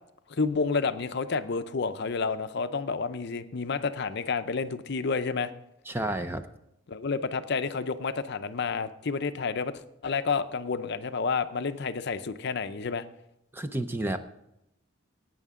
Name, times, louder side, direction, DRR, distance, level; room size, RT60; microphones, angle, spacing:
voice 1, 0.3-5.5 6.9-9.7 10.0-13.0, left 4 dB, 55° left, 11 dB, 0.5 m, -30 dB
voice 2, 5.9-6.4 13.5-14.2, right 1 dB, 10° right, 9 dB, 0.5 m, -30 dB
16.5 x 9.2 x 3.7 m, 0.84 s
head